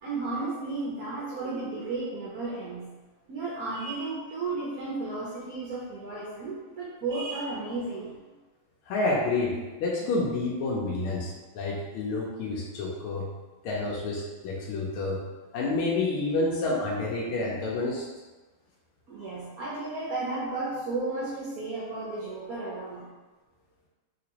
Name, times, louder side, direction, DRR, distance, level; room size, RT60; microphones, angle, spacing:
voice 1, 0.0-2.9 3.3-8.2 19.1-23.1, right 3 dB, 75° right, -6 dB, 0.8 m, -33 dB
voice 2, 8.9-13.3 13.6-15.2 15.5-18.0, left 2 dB, 85° left, -3 dB, 1.5 m, -29 dB
3.6 x 3.0 x 2.8 m, 1.2 s
omnidirectional pair, 2.4 m